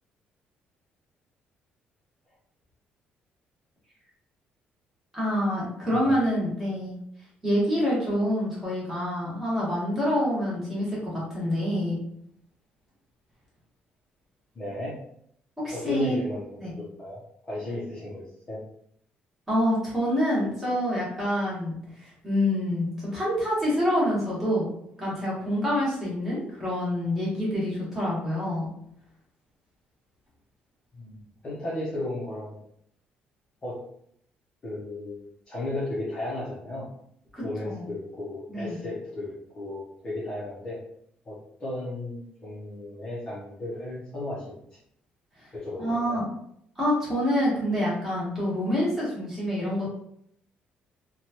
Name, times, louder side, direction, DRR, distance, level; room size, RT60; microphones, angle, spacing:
voice 1, 5.1-7.0 7.4-12.0 15.6-16.2 16.6-16.7 19.5-24.7 25.0-28.7 37.3-37.8 38.5-38.8 45.4-45.5 45.8-46.2 46.8-49.9, equal, 10° right, -7 dB, 1.2 m, -27 dB
voice 2, 14.5-15.0 15.7-18.6 30.9-32.6 33.6-33.8 34.6-35.2 35.5-36.9 37.4-40.8 41.3-44.6 45.5-46.2, left 1 dB, 25° left, -7 dB, 0.6 m, -35 dB
3.0 x 2.2 x 2.7 m, 0.71 s
cardioid pair, 175°, 3 cm